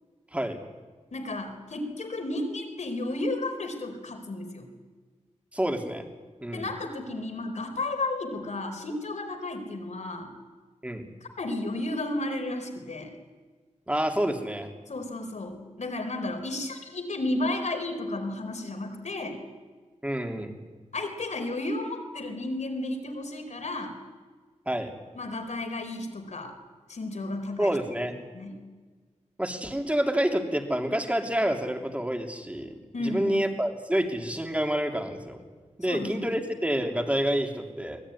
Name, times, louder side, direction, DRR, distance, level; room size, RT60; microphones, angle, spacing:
voice 1, 1.1-4.7 6.5-10.3 11.2-13.1 14.9-19.4 20.9-23.9 25.1-26.5 26.9-28.6 32.9-33.4 35.8-36.4, left 2 dB, 70° left, 5 dB, 4.4 m, -33 dB
voice 2, 5.5-6.1 6.4-6.7 10.8-11.1 13.9-14.7 20.0-20.5 24.7-24.9 27.6-28.1 29.4-35.4 35.8-38.0, equal, 10° right, 4 dB, 3.0 m, -28 dB
24.0 x 18.5 x 9.9 m, 1.4 s
wide cardioid pair, 95°, 12 cm